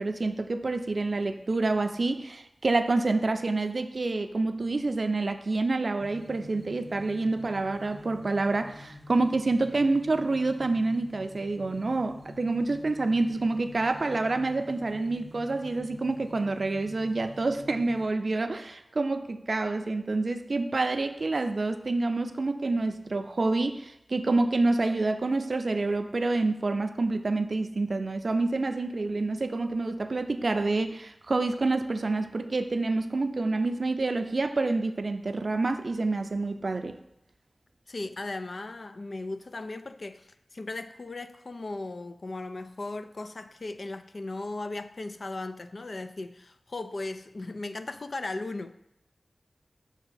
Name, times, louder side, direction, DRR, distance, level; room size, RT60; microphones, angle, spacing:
voice 1, 0.0-37.0, right 3 dB, 65° right, 0.4 m, -28 dB
sound 1, 6.0-18.1, left 1 dB, 35° left, 1.1 m, -47 dB
voice 2, 37.9-48.7, left 2 dB, 65° left, 0.4 m, -37 dB
6.0 x 3.5 x 5.6 m
wide cardioid pair, 55°, 0 cm